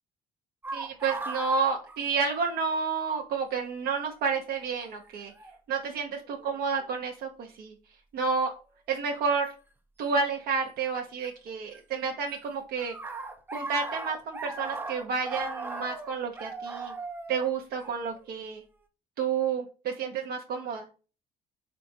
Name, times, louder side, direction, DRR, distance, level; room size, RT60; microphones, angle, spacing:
sound 1, 0.6-2.7 3.0-3.1 4.1-4.4 5.4-5.6 6.3-6.8 9.4-9.5 10.9-11.8 12.0-18.6, right 3 dB, 10° right, 0.3 m, -38 dB
voice 1, 0.7-5.3 5.7-7.7 8.1-8.5 8.9-9.5 10.0-12.9 13.5-16.9 17.3-18.6 19.2-20.8, right 5 dB, 70° right, 1 dB, 0.5 m, -30 dB
3.7 x 2.3 x 2.7 m, 0.34 s
cardioid pair, 110°, 17 cm